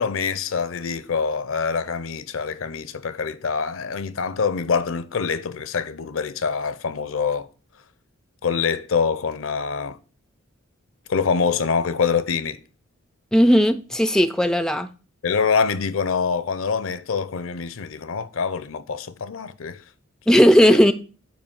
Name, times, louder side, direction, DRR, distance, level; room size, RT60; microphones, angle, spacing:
voice 1, 0.0-7.5 8.4-10.0 11.1-12.6 15.2-19.8 20.6-20.8, left 5 dB, 70° left, 0.6 m, -25 dB
voice 2, 13.3-14.9 20.3-20.9, equal, 5° left, 0.3 m, -16 dB
8.7 x 3.1 x 5.4 m
head